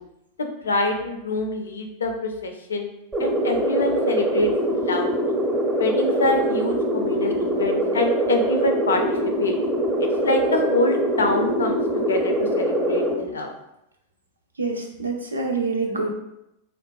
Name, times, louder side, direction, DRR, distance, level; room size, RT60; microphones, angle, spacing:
voice 1, 0.4-2.9 3.2-5.1 5.8-9.6 10.2-13.5, left 2 dB, 70° left, 4 dB, 0.4 m, -25 dB
sound 1, 3.1-13.1, right 1 dB, 15° right, 0.6 m, -23 dB
voice 2, 14.6-16.1, right 3 dB, 75° right, 2 dB, 0.4 m, -26 dB
3.5 x 2.1 x 2.3 m, 0.85 s
figure-of-eight pair, 90°, 0 cm